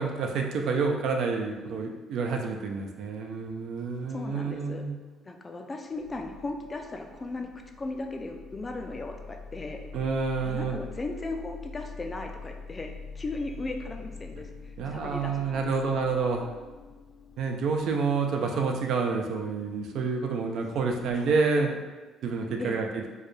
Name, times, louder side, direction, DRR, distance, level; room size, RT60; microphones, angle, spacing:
voice 1, 0.0-5.0 9.9-10.8 14.8-16.5 17.4-21.8 22.2-23.0, right 4 dB, 65° right, 3 dB, 0.4 m, -28 dB
voice 2, 4.1-4.8 5.2-7.5 7.8-9.8 10.4-16.2 18.4-18.6 22.6-22.8, left 2 dB, 20° left, 3 dB, 0.3 m, -37 dB
sound 1, 4.8-5.2 5.5-21.4, left 4 dB, 70° left, 0.6 m, -46 dB
4.5 x 2.2 x 3.1 m, 1.3 s
cardioid pair, 135°, 0 cm